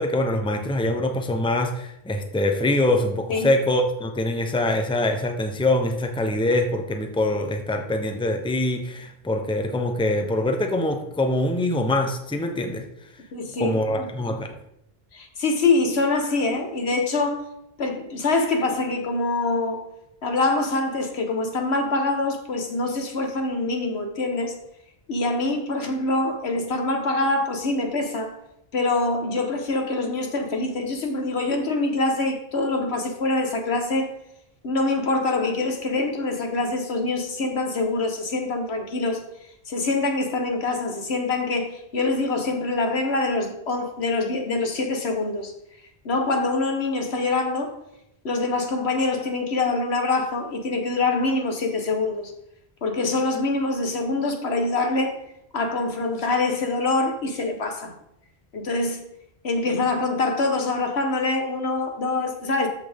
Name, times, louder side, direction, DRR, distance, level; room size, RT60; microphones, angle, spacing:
voice 1, 0.0-12.9 13.6-14.5, left 1 dB, 5° left, 5 dB, 0.8 m, -24 dB
voice 2, 13.3-14.1 15.1-17.4 17.8-19.8 20.2-24.5 25.1-28.4 28.7-34.1 34.6-39.2 39.7-45.5 46.0-47.7 48.2-52.3 52.8-55.2 55.5-57.9 58.5-59.0 59.4-62.7, left 3 dB, 75° left, 4 dB, 1.5 m, -25 dB
13.5 x 5.9 x 3.6 m, 0.80 s
omnidirectional pair, 1.1 m